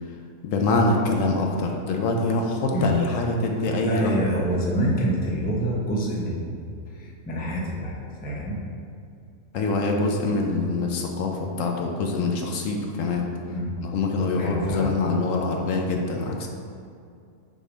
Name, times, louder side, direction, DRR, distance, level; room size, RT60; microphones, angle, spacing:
voice 1, 0.4-4.5 9.5-13.3 13.8-16.5, left 3 dB, 70° left, 2 dB, 0.9 m, -25 dB
voice 2, 3.6-6.6 6.9-7.9 8.2-8.6 13.5-13.7 14.4-14.9, right 1 dB, 10° left, -3 dB, 0.5 m, -26 dB
6.3 x 3.4 x 5.0 m, 2.4 s
omnidirectional pair, 1.5 m